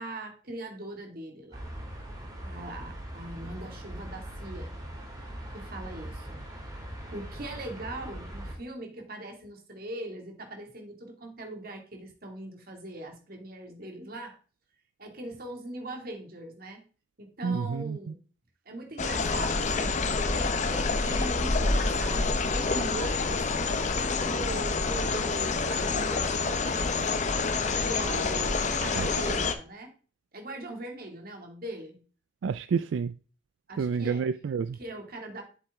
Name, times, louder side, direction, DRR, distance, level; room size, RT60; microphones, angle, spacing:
voice 1, 0.0-1.7 2.4-4.7 5.5-6.8 7.1-14.4 15.0-16.8 17.2-18.2 18.7-20.0 20.3-27.3 27.8-29.9 30.3-32.0 33.7-34.4 34.7-35.4, right 1 dB, 55° right, 2.4 m, -41 dB
sound 1, 1.5-8.6, right 1 dB, 20° right, 2.4 m, -41 dB
voice 2, 17.4-18.0 28.9-29.1 32.4-33.1 33.8-34.8, right 6 dB, 85° right, 0.3 m, -29 dB
sound 2, 19.0-29.5, left 3 dB, 40° left, 0.8 m, -27 dB
7.8 x 7.4 x 3.6 m
head